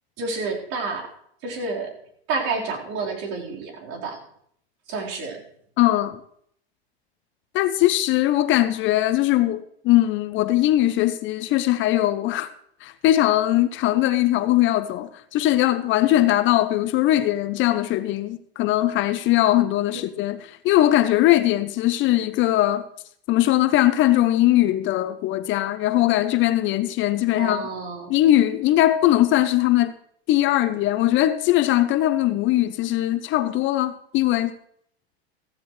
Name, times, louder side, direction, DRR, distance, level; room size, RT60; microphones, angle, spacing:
voice 1, 0.2-1.1 1.4-1.9 2.3-4.2 4.9-5.4 27.3-28.2, right 4 dB, 50° right, 4.3 m, -29 dB
voice 2, 5.8-6.2 7.5-12.5 12.8-22.9 23.3-27.7 28.1-29.9 30.3-34.6, left 14 dB, 35° left, 0.7 m, -20 dB
15.5 x 15.0 x 3.2 m
hypercardioid pair, 110°, 32 cm